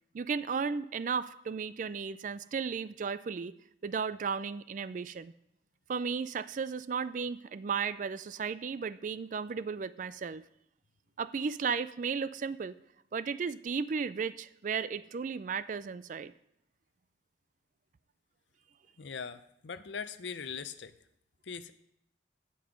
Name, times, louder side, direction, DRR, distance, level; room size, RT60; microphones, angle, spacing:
voice 1, 0.1-3.5 3.8-5.3 5.9-10.4 11.2-12.7 13.1-16.3, right 5 dB, 45° right, 15 dB, 0.3 m, -34 dB
voice 2, 19.0-20.9 21.5-21.7, left 6 dB, 75° left, 12 dB, 0.6 m, -40 dB
15.5 x 5.4 x 5.1 m, 0.78 s
head